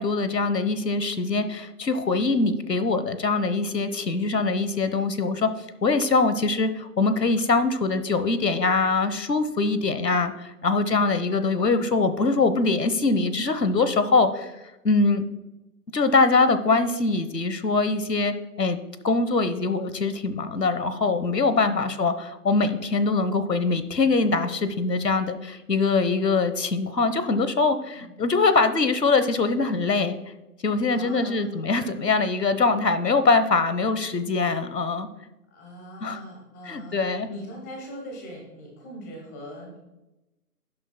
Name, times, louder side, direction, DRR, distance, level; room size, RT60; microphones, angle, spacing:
voice 1, 0.0-5.5 5.8-14.5 14.8-15.2 15.9-18.8 19.0-30.2 30.6-35.1 36.0-36.2 36.7-37.3, left 3 dB, 90° left, 11 dB, 1.1 m, -23 dB
voice 2, 30.9-31.8 35.5-39.8, equal, 10° left, 0 dB, 1.1 m, -41 dB
17.5 x 7.8 x 2.2 m, 1.0 s
figure-of-eight pair, 150°, 48 cm